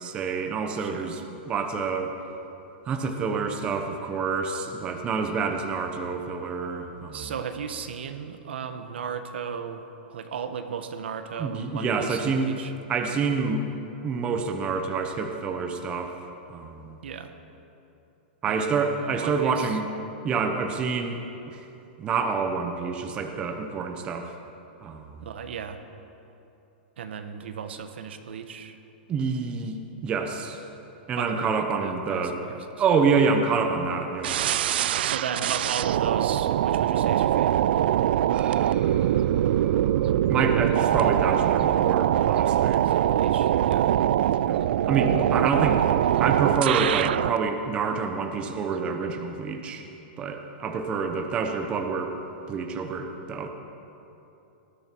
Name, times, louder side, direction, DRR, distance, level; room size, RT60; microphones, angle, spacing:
voice 1, 0.0-2.1 2.8-7.3 11.4-12.5 12.9-13.7 14.0-16.1 16.5-17.0 18.4-19.8 20.2-21.2 21.5-21.6 22.0-24.4 24.8-25.2 29.1-30.6 31.1-32.4 32.8-34.4 38.3-42.9 44.4-45.8 46.2-49.8 50.2-52.1 52.5-53.5, right 5 dB, 20° right, 5 dB, 0.9 m, -27 dB
voice 2, 0.8-1.2 7.1-9.8 10.1-12.7 17.0-17.3 18.5-18.8 19.2-19.8 25.2-25.8 27.0-28.8 31.2-32.6 35.0-37.7 42.8-43.9, right 7 dB, 85° right, 7 dB, 1.2 m, -35 dB
sound 1, 34.2-47.4, right 11 dB, 65° right, 0.3 m, -23 dB
19.0 x 13.0 x 4.6 m, 2.9 s
supercardioid pair, 165°, 6 cm